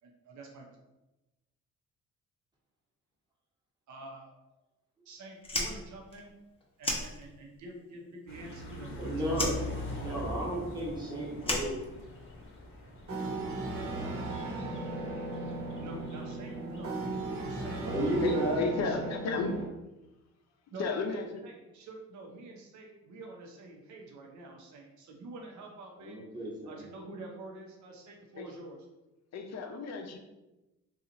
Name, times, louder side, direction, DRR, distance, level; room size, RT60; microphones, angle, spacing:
voice 1, 0.0-0.7 3.9-4.3 5.0-6.4 6.8-9.1 9.4-10.2 15.8-17.8 18.2-18.3 18.6-19.0 20.7-26.2 26.7-28.8, right 2 dB, 70° right, 1 dB, 0.8 m, -47 dB
Fire, 5.4-7.7 7.9-8.9 9.3-12.5, left 1 dB, 20° left, 0.8 m, -35 dB
sound 1, 8.3-17.6, left 1 dB, 45° left, 1.1 m, -43 dB
voice 2, 9.0-11.9 17.8-18.6 26.0-26.8, right 1 dB, 15° right, -5 dB, 1.2 m, -33 dB
sound 2, 13.1-19.7, right 2 dB, 50° right, 1.1 m, -36 dB
voice 3, 18.2-19.6 20.8-21.5 28.4-28.5 29.3-30.2, left 4 dB, 60° left, 4 dB, 0.6 m, -34 dB
2.8 x 2.4 x 3.8 m, 1.0 s
cardioid pair, 90°, 30 cm